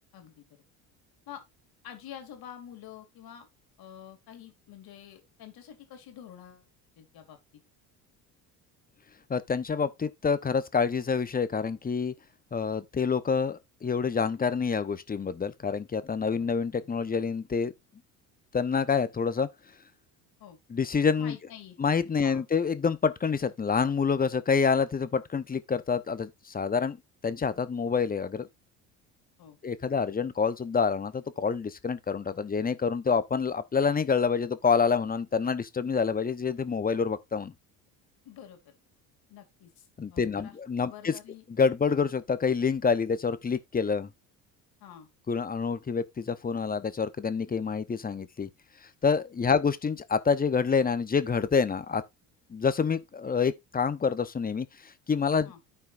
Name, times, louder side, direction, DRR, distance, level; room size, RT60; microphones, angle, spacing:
voice 1, 0.1-0.5 1.3-1.4 1.8-3.5 3.8-6.7 7.0-7.6 16.3-16.5 20.4-20.6 21.2-21.8 22.2-22.5 29.4-29.6 38.2-38.8 39.3-40.5 40.8-41.4 44.8-45.1 55.4-55.6, left 10 dB, 60° left, 2.6 m, -47 dB
voice 2, 9.3-12.1 12.5-17.7 18.5-19.5 20.7-21.3 21.8-27.0 27.2-28.5 29.6-37.5 40.0-41.1 41.6-44.1 45.3-48.5 49.0-52.0 52.5-54.7 55.1-55.5, left 5 dB, 20° left, 0.8 m, -27 dB
13.5 x 4.5 x 2.5 m
supercardioid pair, 85°, 41 cm